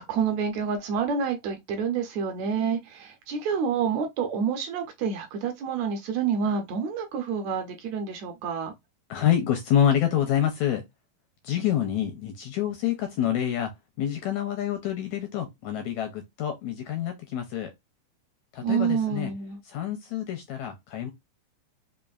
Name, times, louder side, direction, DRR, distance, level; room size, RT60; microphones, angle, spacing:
voice 1, 0.0-8.7 18.6-19.6, right 6 dB, 75° right, 1.7 m, -28 dB
voice 2, 9.1-10.8 11.4-13.7 14.0-17.7 18.5-19.3 19.6-21.1, left 10 dB, 80° left, 1.7 m, -27 dB
5.1 x 2.5 x 2.3 m
omnidirectional pair, 3.7 m